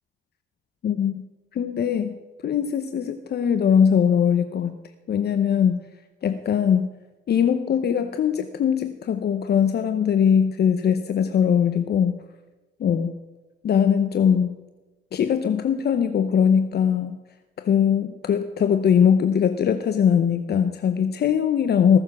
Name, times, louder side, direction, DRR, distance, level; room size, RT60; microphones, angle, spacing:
voice 1, 0.8-1.2 1.5-2.2 2.4-4.8 5.1-5.8 6.2-6.9 7.3-12.2 12.8-13.1 13.6-14.5 15.1-17.2 17.6-22.0, left 8 dB, 55° left, 9 dB, 0.8 m, -21 dB
19.0 x 7.2 x 6.0 m, 1.1 s
cardioid pair, 90°, 20 cm